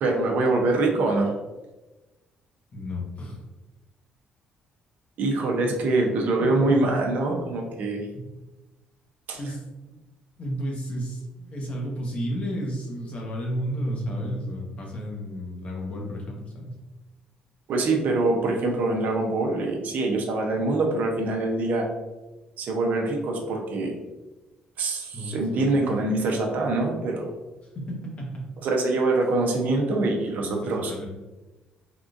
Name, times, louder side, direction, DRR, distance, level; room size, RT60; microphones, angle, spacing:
voice 1, 0.0-1.3 5.2-8.1 9.3-9.4 17.7-21.9 22.6-23.9 24.8-27.3 28.6-30.9, right 2 dB, 65° right, 1 dB, 0.6 m, -24 dB
voice 2, 2.7-3.4 6.4-7.0 8.1-8.3 9.4-10.0 10.4-16.8 25.1-25.7 27.7-28.4 30.4-31.1, equal, 45° left, -1 dB, 1.0 m, -32 dB
3.6 x 2.5 x 2.4 m, 1.1 s
cardioid pair, 90°, 3 cm